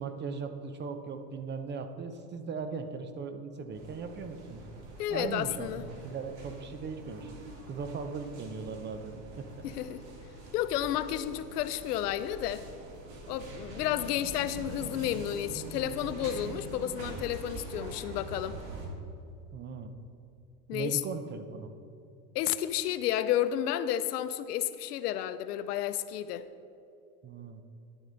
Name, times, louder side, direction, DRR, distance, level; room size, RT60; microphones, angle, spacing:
voice 1, 0.0-4.6 5.1-7.3 7.7-9.6 19.5-19.9 20.7-21.7 27.2-27.6, right 5 dB, 25° right, 8 dB, 0.6 m, -38 dB
sound 1, 3.7-18.9, right 2 dB, 55° right, 2.2 m, -44 dB
voice 2, 5.0-5.8 9.6-10.0 10.5-12.6 13.3-18.6 20.7-21.0 22.3-26.5, left 11 dB, 80° left, 13 dB, 0.6 m, -31 dB
10.5 x 9.0 x 3.9 m, 2.7 s
hypercardioid pair, 105°, 47 cm